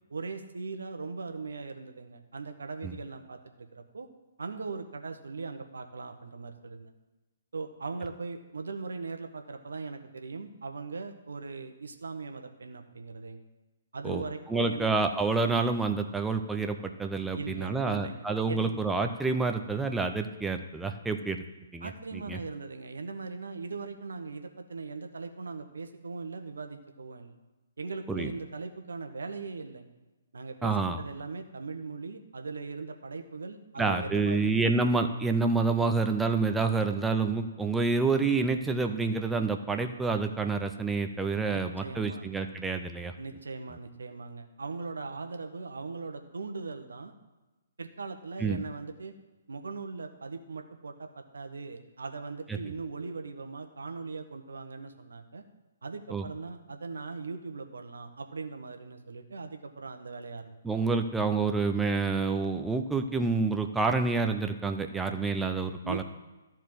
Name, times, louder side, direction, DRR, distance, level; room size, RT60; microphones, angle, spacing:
voice 1, 0.1-4.1 4.4-6.9 7.5-13.4 13.9-14.9 17.3-18.8 21.8-27.3 27.8-29.9 30.3-34.7 41.5-42.3 43.2-47.1 47.8-49.1 49.5-55.4 55.8-60.6 65.8-66.0, right 4 dB, 65° right, 6 dB, 1.1 m, -39 dB
voice 2, 14.5-21.4 21.7-22.4 28.1-28.3 30.6-31.0 33.8-43.1 48.4-48.6 56.1-56.2 60.6-66.0, right 4 dB, 5° right, 5 dB, 0.6 m, -28 dB
13.5 x 4.5 x 7.6 m, 1.1 s
figure-of-eight pair, 125°, 0 cm